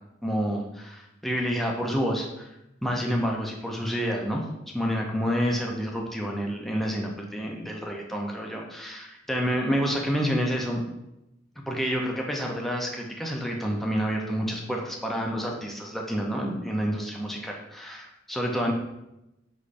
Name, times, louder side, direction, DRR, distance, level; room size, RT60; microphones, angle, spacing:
voice 1, 0.2-2.5 2.8-4.4 4.7-10.8 11.7-18.7, equal, ahead, -1 dB, 0.5 m, -28 dB
5.0 x 3.2 x 2.5 m, 0.90 s
head